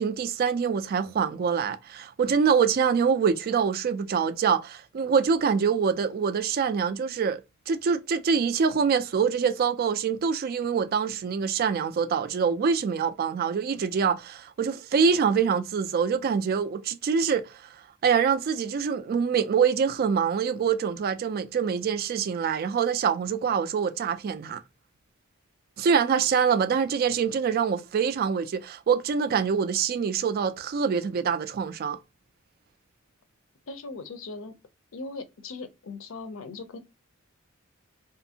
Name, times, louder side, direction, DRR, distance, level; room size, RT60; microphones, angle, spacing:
voice 1, 0.0-17.6 18.0-24.6 25.8-32.0, right 6 dB, 45° right, 0.3 m, -25 dB
voice 2, 33.7-34.5 34.9-36.8, left 3 dB, 70° left, 0.5 m, -39 dB
2.6 x 2.4 x 2.7 m
head